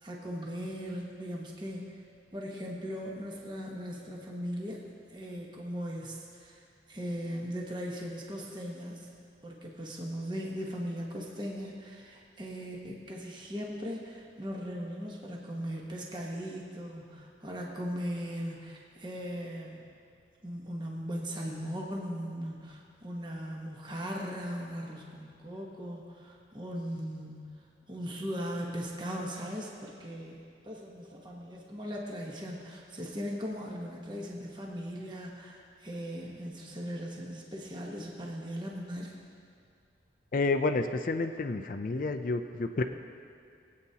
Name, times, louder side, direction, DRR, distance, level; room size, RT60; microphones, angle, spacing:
voice 1, 0.0-2.0 2.3-4.8 5.1-6.6 6.9-9.1 9.4-19.9 20.4-27.4 27.9-39.1, equal, 25° right, -2 dB, 1.1 m, -38 dB
voice 2, 40.3-42.8, left 3 dB, 45° left, 7 dB, 0.4 m, -30 dB
21.0 x 8.5 x 2.8 m, 2.3 s
head